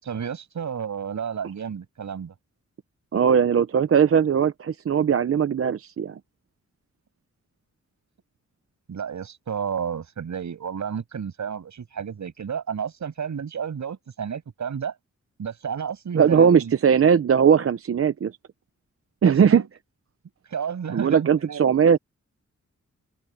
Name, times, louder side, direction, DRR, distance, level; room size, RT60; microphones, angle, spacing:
voice 1, 0.0-2.3 8.9-14.9 15.4-16.8 19.3-19.7 20.5-21.6, right 7 dB, 75° right, 7.6 m, -31 dB
voice 2, 3.1-6.2 16.1-18.3 19.2-19.6 20.9-22.0, right 7 dB, 50° right, 0.7 m, -19 dB
open air
wide cardioid pair, 125°, 29 cm